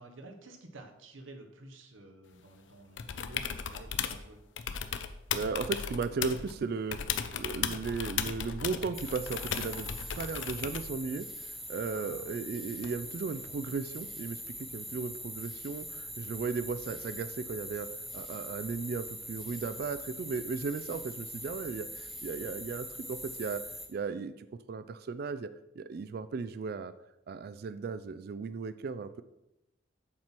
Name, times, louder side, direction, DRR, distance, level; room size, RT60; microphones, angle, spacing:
voice 1, 0.0-4.4 11.9-12.3, right 2 dB, 85° right, 6 dB, 1.2 m, -51 dB
sound 1, 3.0-4.2 4.6-6.5 6.9-10.9 12.8-12.9, left 8 dB, 65° left, 0.5 m, -36 dB
voice 2, 5.3-7.0 7.4-9.9 10.2-26.9 27.3-29.2, right 4 dB, 50° right, 13 dB, 0.3 m, -36 dB
sound 2, 8.9-23.9, equal, ahead, 0.8 m, -43 dB
7.5 x 4.4 x 5.9 m, 0.88 s
head